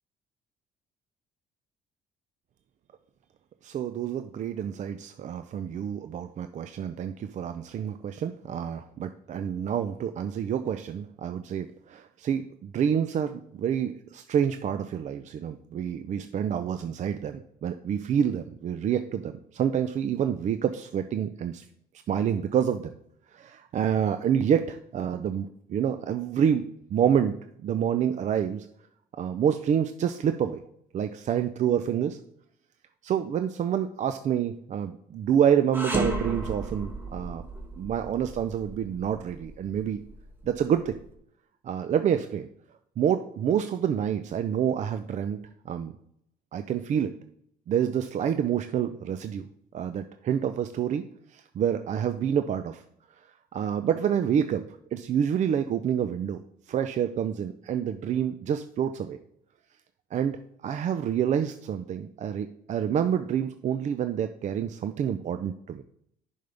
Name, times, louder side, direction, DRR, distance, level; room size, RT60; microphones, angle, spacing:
voice 1, 3.6-21.6 22.1-22.9 23.3-28.7 29.2-30.6 30.9-32.2 33.0-37.4 37.8-40.0 40.4-41.0 41.6-42.5 43.0-45.4 45.7-45.9 46.5-47.2 47.7-49.5 49.7-51.1 51.3-52.8 53.5-56.4 56.7-59.2 60.1-60.4 60.6-65.8, right 8 dB, 45° right, 9 dB, 0.5 m, -28 dB
sound 1, 35.7-41.0, right 2 dB, 10° right, 1.4 m, -34 dB
10.5 x 5.4 x 3.4 m, 0.70 s
cardioid pair, 110°, 17 cm